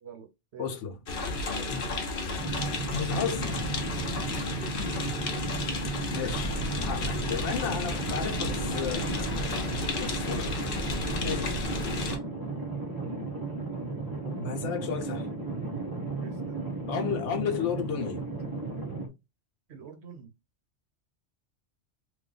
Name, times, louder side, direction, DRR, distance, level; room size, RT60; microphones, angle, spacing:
voice 1, 0.0-0.8 1.5-1.8 5.6-6.0 16.2-16.6 19.7-20.3, right 8 dB, 65° right, 1.0 m, -46 dB
voice 2, 0.6-1.0 1.3-1.4 1.7-2.0 2.9-3.7 6.1-9.3 10.0-10.6 11.2-11.6 13.8-14.0 14.2-15.3 16.9-18.3 19.0-19.1, left 6 dB, 85° left, 1.0 m, -33 dB
sound 1, 1.1-12.2, left 3 dB, 55° left, 0.8 m, -33 dB
sound 2, 2.4-19.1, right 3 dB, 30° right, 0.5 m, -35 dB
Waves surf, 6.2-12.1, right 1 dB, 15° left, 1.2 m, -39 dB
3.0 x 2.1 x 3.7 m
omnidirectional pair, 1.2 m